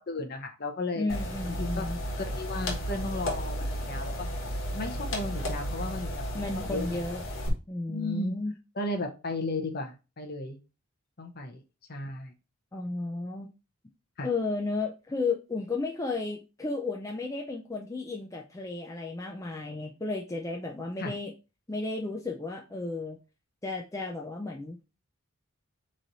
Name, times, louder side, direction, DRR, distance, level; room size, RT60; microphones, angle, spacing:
voice 1, 0.1-1.2 1.4-1.9 2.1-4.3 4.7-7.0 7.9-8.4 8.7-10.6 11.2-11.6 11.9-12.3 14.2-14.3 21.0-21.2, left 2 dB, 45° left, 4 dB, 0.8 m, -35 dB
voice 2, 1.0-2.0 6.3-7.2 7.7-8.5 12.7-13.5 14.2-21.3 21.7-23.2 23.6-24.8, left 3 dB, 15° left, 0 dB, 0.4 m, -33 dB
sound 1, 1.1-7.5, equal, 65° left, 1.3 m, -33 dB
4.0 x 3.2 x 3.9 m, 0.30 s
head